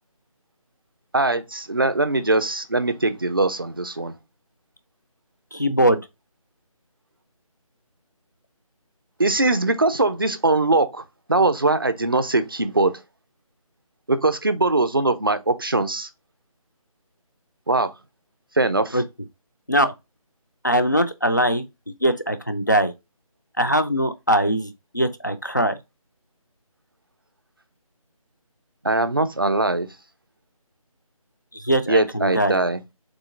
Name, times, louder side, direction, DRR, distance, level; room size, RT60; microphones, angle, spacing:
voice 1, 1.1-4.1 9.2-11.0 11.3-13.0 14.1-16.1 17.7-17.9 18.6-19.0 28.8-29.9 31.9-32.8, right 2 dB, 40° right, 0.4 m, -21 dB
voice 2, 5.5-6.0 18.9-19.0 19.7-19.9 20.6-22.9 23.6-25.8 31.5-32.6, equal, 30° left, 0.3 m, -21 dB
3.8 x 2.8 x 3.6 m
figure-of-eight pair, 175°, 19 cm